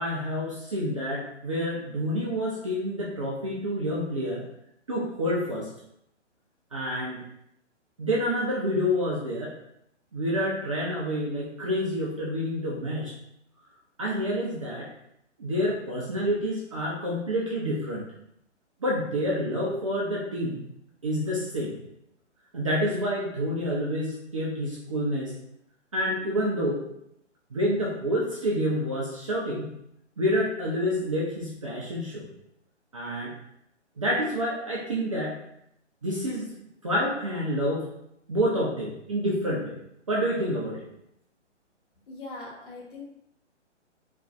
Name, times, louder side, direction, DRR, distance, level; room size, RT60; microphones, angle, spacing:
voice 1, 0.0-4.4 4.9-5.7 6.7-7.2 8.0-9.5 10.1-13.1 14.0-14.9 15.4-18.0 18.8-20.6 21.0-21.7 22.5-25.3 25.9-26.8 27.5-29.7 30.2-32.3 32.9-33.3 34.0-35.4 36.0-36.5 36.8-37.9 38.3-39.7 40.1-40.8, equal, 30° right, -5 dB, 0.4 m, -28 dB
voice 2, 42.1-43.0, left 2 dB, 45° left, -4 dB, 1.0 m, -41 dB
3.0 x 2.5 x 2.4 m, 0.76 s
figure-of-eight pair, 130°, 36 cm